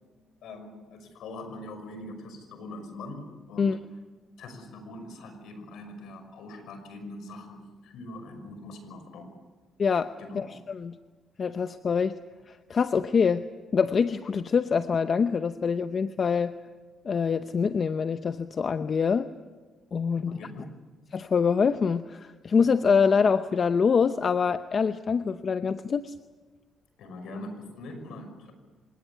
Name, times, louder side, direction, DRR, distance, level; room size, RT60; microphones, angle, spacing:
voice 1, 0.4-3.8 4.4-9.3 10.2-10.5 20.1-20.7 27.0-28.5, left 1 dB, 80° left, 7 dB, 5.7 m, -42 dB
voice 2, 9.8-11.0 11.4-12.2 12.5-13.4 13.7-16.5 17.0-19.3 19.9-20.4 21.1-26.1, left 6 dB, 45° left, 11 dB, 0.8 m, -25 dB
26.5 x 18.0 x 9.6 m, 1.3 s
cardioid pair, 90°, 0 cm